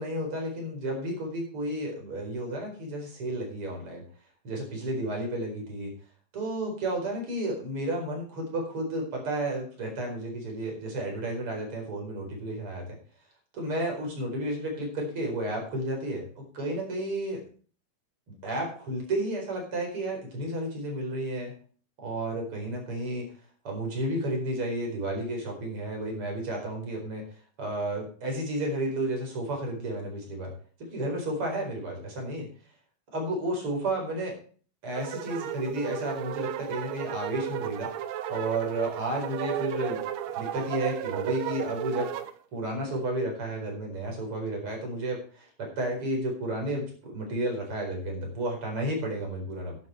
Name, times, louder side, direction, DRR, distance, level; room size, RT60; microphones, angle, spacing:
voice 1, 0.0-4.0 4.4-5.9 6.3-13.0 13.5-17.4 18.3-21.6 22.0-23.3 23.6-27.2 27.6-30.5 30.8-32.5 33.1-34.4 34.8-37.9 38.3-40.0 40.3-42.1 42.5-49.8, right 1 dB, 40° right, 1 dB, 5.2 m, -32 dB
sound 1, 34.9-42.3, right 11 dB, 70° right, 1.8 m, -34 dB
11.0 x 10.5 x 4.5 m, 0.42 s
omnidirectional pair, 3.6 m